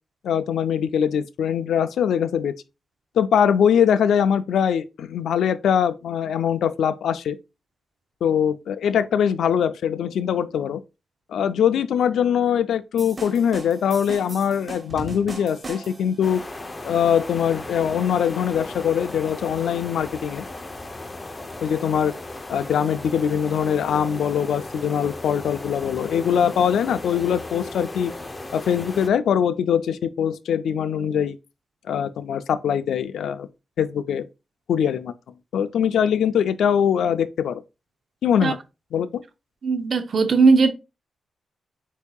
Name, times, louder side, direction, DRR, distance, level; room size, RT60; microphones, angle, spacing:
voice 1, 0.2-2.5 3.2-7.4 8.2-10.8 11.3-16.4 16.8-20.4 21.6-22.1 22.5-28.1 28.5-31.4 31.9-33.5 33.8-34.2 34.7-35.1 35.5-37.6 38.2-38.6 38.9-39.1, left 8 dB, 85° left, 0.4 m, -22 dB
sound 1, 13.0-16.2, right 3 dB, 30° right, 1.3 m, -38 dB
sound 2, 16.2-29.1, left 2 dB, 20° left, 0.6 m, -36 dB
voice 2, 39.6-40.7, right 4 dB, 50° right, 0.6 m, -18 dB
8.1 x 2.7 x 2.3 m
cardioid pair, 105°, 0 cm